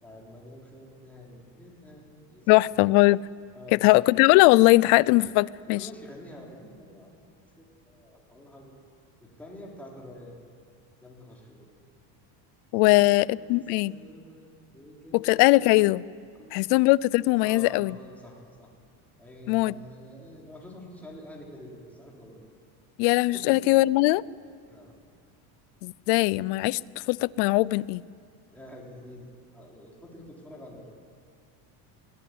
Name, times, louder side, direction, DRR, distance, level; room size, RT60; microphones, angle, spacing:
voice 1, 0.0-2.7 3.5-3.8 5.7-7.2 7.6-8.7 9.2-10.4 11.0-11.7 12.7-15.4 16.4-16.6 17.4-18.7 19.2-22.4 23.3-23.7 24.7-25.0 28.5-30.9, left 1 dB, 5° left, -3 dB, 3.6 m, -47 dB
voice 2, 2.5-3.2 3.7-5.8 12.7-13.9 15.1-16.0 16.5-17.9 19.5-19.7 23.0-24.2 25.8-26.8 27.1-28.0, left 21 dB, 60° left, 21 dB, 0.5 m, -20 dB
22.5 x 16.0 x 9.5 m, 2.2 s
cardioid pair, 170°, 47 cm